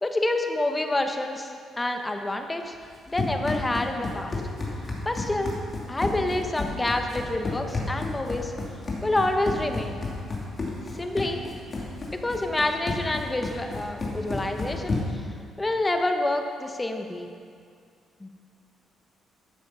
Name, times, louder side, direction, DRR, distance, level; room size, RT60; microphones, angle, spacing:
voice 1, 0.0-2.8 3.1-4.4 5.0-5.5 5.9-8.5 9.0-10.0 11.0-11.5 12.1-15.2 15.6-17.3 18.2-18.3, left 2 dB, 15° left, 5 dB, 1.1 m, -28 dB
Run, 2.8-15.3, left 3 dB, 35° left, 2.5 m, -32 dB
12.5 x 7.1 x 5.7 m, 2.3 s
cardioid pair, 90°, 0 cm